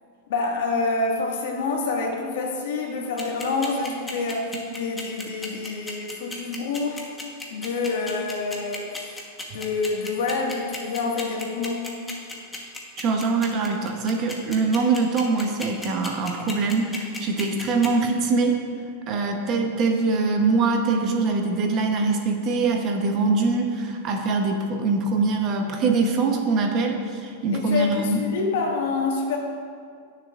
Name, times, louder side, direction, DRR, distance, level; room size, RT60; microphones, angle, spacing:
voice 1, 0.3-7.0 7.5-8.8 9.5-11.9 27.5-29.4, left 3 dB, 70° left, -1 dB, 1.7 m, -27 dB
sound 1, 3.2-17.9, left 3 dB, 10° left, 1.1 m, -34 dB
voice 2, 13.0-18.5 19.1-28.2, right 3 dB, 30° right, 3 dB, 0.9 m, -23 dB
17.5 x 6.7 x 2.4 m, 2.2 s
supercardioid pair, 160°, 0 cm